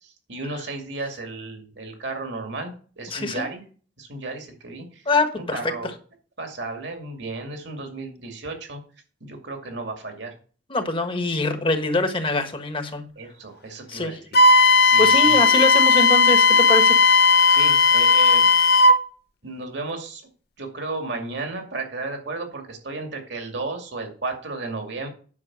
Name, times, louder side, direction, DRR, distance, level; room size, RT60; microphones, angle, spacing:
voice 1, 0.0-3.6 4.0-5.1 5.4-5.9 6.4-8.8 9.2-10.3 13.2-14.4 14.8-15.3 17.5-18.5 19.4-20.2 20.6-25.1, right 3 dB, 70° right, 4 dB, 2.4 m, -33 dB
voice 2, 3.1-3.4 5.1-5.6 10.7-13.0 13.9-14.2 15.0-17.0, left 2 dB, 30° left, 8 dB, 1.3 m, -23 dB
Wind instrument woodwind instrument, 14.3-19.0, left 3 dB, 55° left, 0.7 m, -15 dB
9.8 x 5.8 x 6.1 m, 0.42 s
head